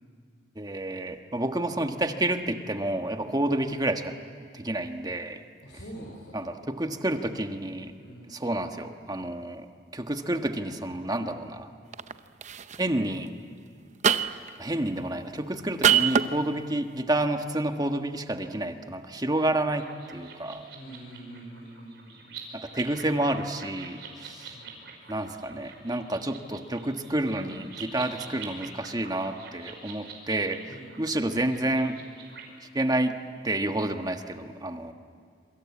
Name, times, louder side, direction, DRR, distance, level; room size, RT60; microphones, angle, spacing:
voice 1, 0.5-4.1 4.5-5.4 6.3-7.9 8.3-9.7 9.9-11.7 12.8-13.3 14.6-20.6 22.5-24.5 25.1-30.6 31.0-32.0 32.7-33.1 33.4-34.9, right 1 dB, 20° right, 6 dB, 1.4 m, -29 dB
voice 2, 5.6-6.4 8.0-8.4 20.7-22.4 24.2-25.1 30.7-31.0, right 1 dB, 75° left, -3 dB, 5.8 m, -46 dB
sound 1, 11.9-12.1 12.4-12.8 14.0-14.5 15.8-16.3, right 8 dB, 40° right, 0.7 m, -22 dB
sound 2, 19.7-32.4, right 5 dB, 65° right, 5.3 m, -45 dB
27.0 x 25.5 x 8.6 m, 2.2 s
head